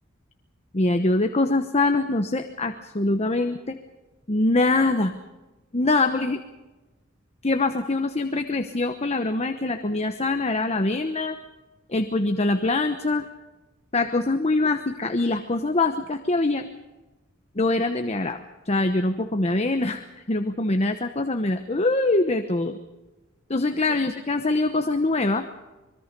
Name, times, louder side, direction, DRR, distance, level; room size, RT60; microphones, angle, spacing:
voice 1, 0.7-3.8 4.3-5.1 5.7-6.4 7.4-11.4 11.9-13.3 13.9-16.7 17.5-22.8 23.5-25.5, left 2 dB, 30° left, 7 dB, 1.0 m, -24 dB
25.5 x 22.5 x 5.3 m, 1.1 s
head